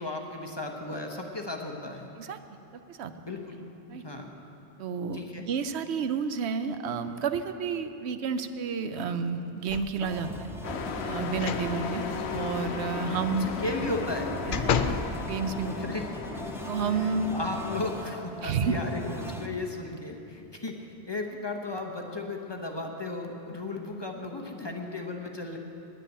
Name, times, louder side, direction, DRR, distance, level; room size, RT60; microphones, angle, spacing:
voice 1, 0.0-2.1 3.2-3.6 3.9-4.3 5.1-5.5 13.5-14.3 15.8-16.1 16.9-25.6, left 2 dB, 25° left, 2 dB, 1.0 m, -35 dB
voice 2, 4.8-10.5 11.0-12.1 12.3-13.5 14.4-15.7 16.6-17.4 18.4-18.8, right 5 dB, 85° right, 10 dB, 0.9 m, -30 dB
sound 1, 9.7-10.2 11.3-11.7 12.1-12.2 13.8-15.1 15.7-15.8, left 7 dB, 60° left, 0.6 m, -31 dB
sound 2, 10.0-19.5, right 1 dB, 5° right, 0.7 m, -41 dB
Truck, 10.6-18.1, left 5 dB, 80° left, 1.0 m, -36 dB
10.0 x 8.9 x 9.7 m, 2.8 s
omnidirectional pair, 1.1 m